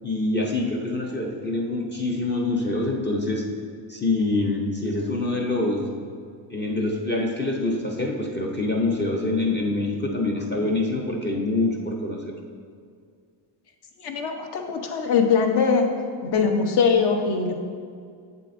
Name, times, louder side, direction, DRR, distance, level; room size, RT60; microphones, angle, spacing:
voice 1, 0.0-3.5 3.9-5.8 6.5-12.3, left 2 dB, 25° left, 0 dB, 0.5 m, -25 dB
voice 2, 14.0-15.9 16.2-17.5, left 5 dB, 55° left, 4 dB, 0.8 m, -21 dB
7.6 x 7.4 x 2.5 m, 2.2 s
cardioid pair, 155°, 48 cm